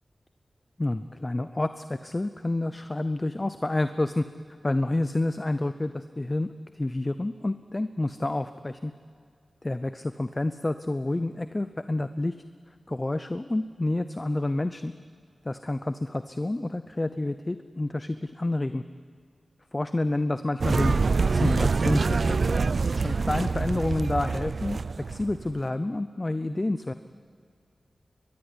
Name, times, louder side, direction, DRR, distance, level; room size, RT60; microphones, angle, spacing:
voice 1, 0.8-4.3 4.6-8.9 9.6-12.4 12.9-14.9 15.4-18.8 19.7-20.9 21.3-22.4 23.0-24.8 25.1-26.9, left 2 dB, 25° left, 11 dB, 0.7 m, -29 dB
sound 1, 20.6-25.5, right 4 dB, 60° right, 0.5 m, -25 dB
22.0 x 22.0 x 9.8 m, 2.2 s
wide cardioid pair, 115°, 0 cm